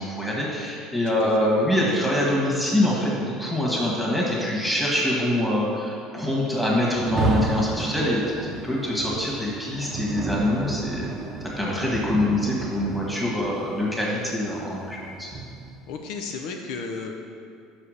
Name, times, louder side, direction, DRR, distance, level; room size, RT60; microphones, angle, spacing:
voice 1, 0.0-11.1 11.6-15.3, left 1 dB, 5° left, -5 dB, 1.6 m, -24 dB
voice 2, 1.1-1.7 15.9-17.2, left 4 dB, 70° left, 3 dB, 0.6 m, -34 dB
Rain, 6.9-15.9, right 3 dB, 35° right, 0.7 m, -32 dB
5.6 x 5.0 x 6.4 m, 2.3 s
cardioid pair, 135°, 0 cm